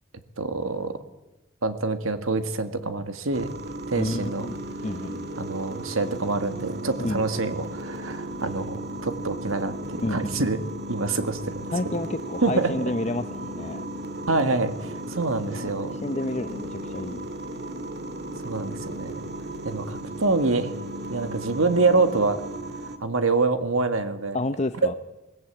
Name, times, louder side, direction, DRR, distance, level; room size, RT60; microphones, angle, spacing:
voice 1, 0.4-1.0 1.6-3.5 3.9-4.5 5.4-11.7 12.4-12.7 14.3-16.0 18.4-19.2 19.7-20.7 21.1-22.4 22.8-24.4 24.8-25.0, right 3 dB, 90° right, 9 dB, 1.9 m, -26 dB
sound 1, 3.3-23.0, right 1 dB, 50° right, 2.0 m, -35 dB
voice 2, 4.0-4.6 4.8-5.3 7.0-7.2 10.0-10.5 11.7-13.8 15.5-17.2 24.3-24.9, left 2 dB, 35° left, 9 dB, 0.7 m, -30 dB
22.0 x 18.0 x 8.7 m, 1.0 s
head